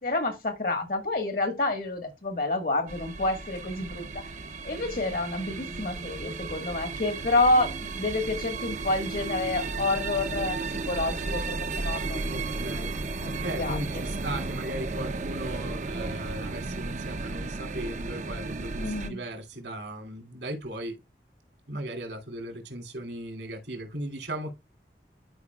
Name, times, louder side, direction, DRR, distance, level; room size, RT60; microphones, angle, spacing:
voice 1, 0.0-4.2 4.6-10.6 10.9-12.4 13.2-13.8 18.8-19.2, left 2 dB, 55° left, 1.5 m, -28 dB
sound 1, 2.9-19.1, right 3 dB, 40° right, 0.6 m, -34 dB
voice 2, 12.3-12.9 13.4-21.0 21.7-24.5, right 1 dB, 85° right, 2.8 m, -37 dB
12.0 x 5.0 x 2.3 m
head